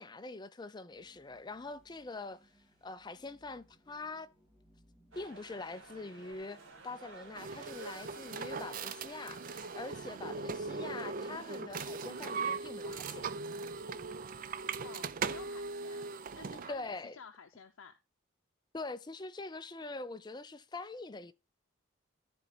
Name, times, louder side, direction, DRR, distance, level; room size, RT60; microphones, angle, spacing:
voice 1, 0.0-2.5 2.8-4.3 5.2-6.6 6.8-13.3 16.7-17.2 18.7-21.3, left 3 dB, 20° left, 0.5 m, -44 dB
sound 1, 0.9-8.8, equal, 5° right, 4.2 m, -68 dB
sound 2, 5.1-12.5, right 3 dB, 70° right, 2.2 m, -53 dB
sound 3, 7.4-16.8, right 4 dB, 40° right, 0.4 m, -39 dB
voice 2, 14.8-16.1 16.4-17.9, left 5 dB, 75° left, 0.7 m, -52 dB
13.0 x 4.3 x 4.0 m
head